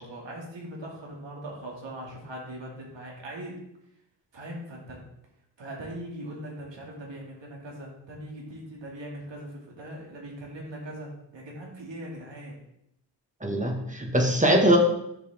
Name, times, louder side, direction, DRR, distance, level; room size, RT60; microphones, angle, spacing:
voice 1, 0.0-3.5 4.3-5.1 5.6-12.6, right 1 dB, 90° right, -2 dB, 2.6 m, -40 dB
voice 2, 13.4-14.8, right 1 dB, 15° right, 2 dB, 1.7 m, -22 dB
10.0 x 6.6 x 3.6 m, 0.78 s
cardioid pair, 70°, 43 cm